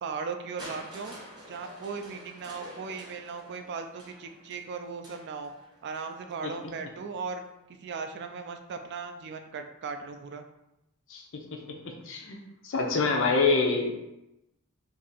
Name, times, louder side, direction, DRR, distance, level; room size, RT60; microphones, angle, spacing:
voice 1, 0.0-1.2 1.5-5.5 5.8-7.4 7.8-10.4, right 5 dB, 50° right, 6 dB, 0.3 m, -37 dB
Crushing, 0.6-6.5 7.4-7.5, equal, 20° right, 0.7 m, -48 dB
voice 2, 11.1-12.4 12.6-13.9, left 4 dB, 60° left, 2 dB, 0.6 m, -27 dB
2.6 x 2.5 x 4.0 m, 0.88 s
head